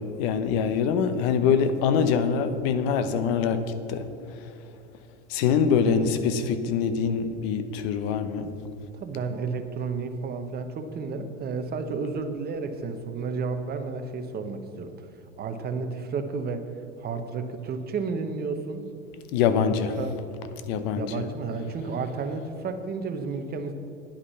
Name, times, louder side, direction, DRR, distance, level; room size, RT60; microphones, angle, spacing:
voice 1, 0.0-3.6 3.9-4.1 5.3-8.5 19.3-19.9 20.7-21.2, left 6 dB, 55° left, 10 dB, 1.0 m, -24 dB
voice 2, 5.8-6.1 8.9-14.9 15.4-16.7 17.0-18.8 19.6-20.2 21.0-23.7, right 4 dB, 25° right, 7 dB, 1.0 m, -32 dB
10.0 x 8.6 x 5.7 m, 2.7 s
hypercardioid pair, 115°, 36 cm